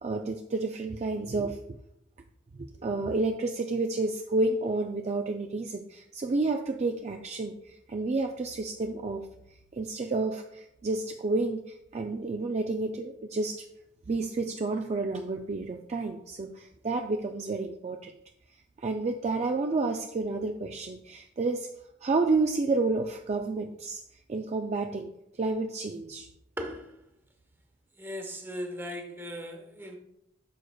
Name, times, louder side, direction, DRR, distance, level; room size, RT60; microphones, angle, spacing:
voice 1, 0.0-1.6 2.6-9.3 9.7-13.7 14.1-18.1 18.8-21.7 22.0-24.0 24.3-25.1 25.4-26.3, right 3 dB, 35° right, 4 dB, 0.4 m, -30 dB
voice 2, 28.0-30.0, equal, 10° right, 4 dB, 0.9 m, -37 dB
9.1 x 6.4 x 2.3 m, 0.80 s
head